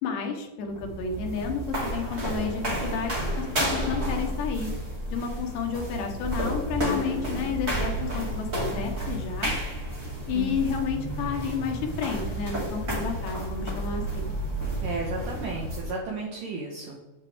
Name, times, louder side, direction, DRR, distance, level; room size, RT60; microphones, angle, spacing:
voice 1, 0.0-4.7 5.1-9.5 10.3-14.3, left 6 dB, 70° left, 2 dB, 3.3 m, -31 dB
sound 1, 0.7-15.9, right 1 dB, 30° right, 1.2 m, -31 dB
voice 2, 14.8-17.1, right 3 dB, 70° right, 0 dB, 2.0 m, -34 dB
9.4 x 8.1 x 3.5 m, 1.1 s
omnidirectional pair, 5.2 m